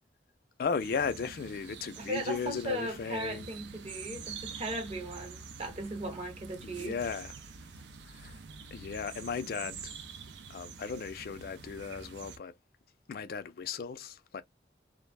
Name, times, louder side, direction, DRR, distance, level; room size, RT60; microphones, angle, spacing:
voice 1, 0.6-3.5 6.6-7.3 8.1-8.4 8.7-9.9 10.5-12.5 13.1-14.4, left 5 dB, 55° left, 0.3 m, -36 dB
sound 1, 0.8-12.4, right 5 dB, 80° right, 0.4 m, -46 dB
voice 2, 2.0-7.0, right 1 dB, 35° right, 0.6 m, -37 dB
2.3 x 2.0 x 3.2 m
head